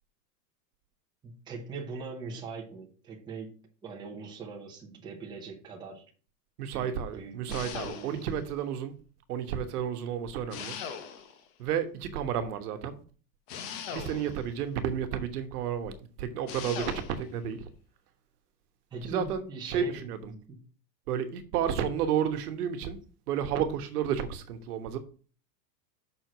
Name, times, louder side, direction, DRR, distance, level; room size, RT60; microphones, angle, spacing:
voice 1, 1.2-6.1 6.7-8.2 18.9-20.6, right 4 dB, 10° right, 0.9 m, -42 dB
voice 2, 6.6-8.9 9.3-10.8 11.6-13.0 13.9-17.7 19.0-20.3 21.1-23.0 23.3-25.0, right 8 dB, 65° right, 1.3 m, -31 dB
sound 1, 7.5-8.4 10.5-11.5 13.5-14.5 16.5-17.3, left 7 dB, 35° left, 1.1 m, -40 dB
6.2 x 4.6 x 5.9 m
supercardioid pair, 165°, 50 cm